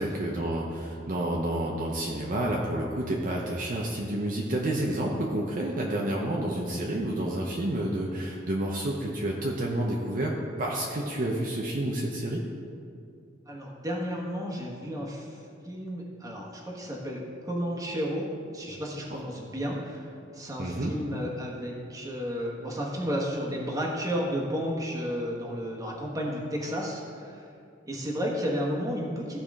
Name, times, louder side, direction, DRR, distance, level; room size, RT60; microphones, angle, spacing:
voice 1, 0.0-10.3 10.6-12.4 20.6-20.9, right 1 dB, 45° right, -2 dB, 0.8 m, -29 dB
voice 2, 13.5-15.4 15.6-18.3 18.5-27.5 27.9-29.4, equal, 20° right, -2 dB, 1.3 m, -32 dB
14.5 x 4.9 x 3.6 m, 2.5 s
head